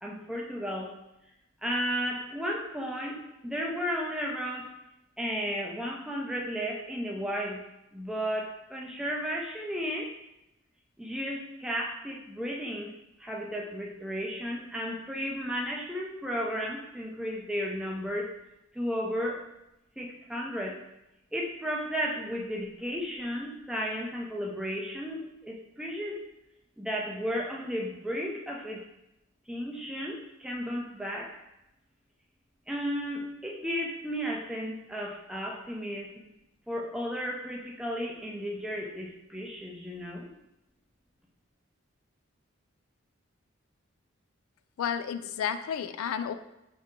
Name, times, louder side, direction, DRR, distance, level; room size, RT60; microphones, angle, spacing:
voice 1, 0.0-0.9 1.6-4.7 5.2-7.6 7.9-10.1 11.0-12.9 13.2-18.3 18.7-19.4 20.0-20.8 21.3-26.2 26.8-28.9 29.5-31.4 32.7-36.3 36.7-40.3, equal, 5° right, -2 dB, 0.5 m, -34 dB
voice 2, 44.8-46.3, left 8 dB, 85° left, 11 dB, 0.3 m, -31 dB
5.0 x 2.7 x 3.6 m, 0.89 s
head